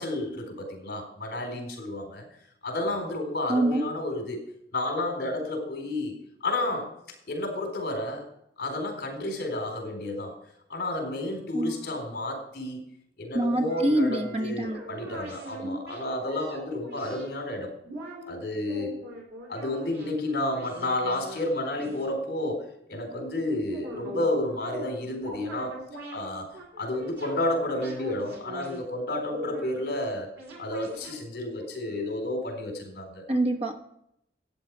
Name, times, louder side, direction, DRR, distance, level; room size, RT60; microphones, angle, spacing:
voice 1, 0.0-2.2 2.6-4.4 4.7-6.9 7.3-8.3 8.6-10.3 10.7-12.8 13.2-17.7 18.3-19.0 19.5-25.8 26.1-26.5 26.8-30.3 30.6-33.2, left 1 dB, 60° left, 2 dB, 4.1 m, -31 dB
voice 2, 3.5-3.9 11.5-11.9 13.3-14.9 33.3-33.8, right 1 dB, 35° right, 6 dB, 1.0 m, -26 dB
sound 1, 13.7-17.2 17.8-18.3 18.6-20.1 20.5-21.5 21.7-22.1 23.6-24.9 25.2-27.4 27.7-28.8 29.3-29.9 30.4-31.6 31.9-32.0, right 1 dB, 80° right, 4.6 m, -41 dB
13.5 x 9.2 x 4.9 m, 0.76 s
head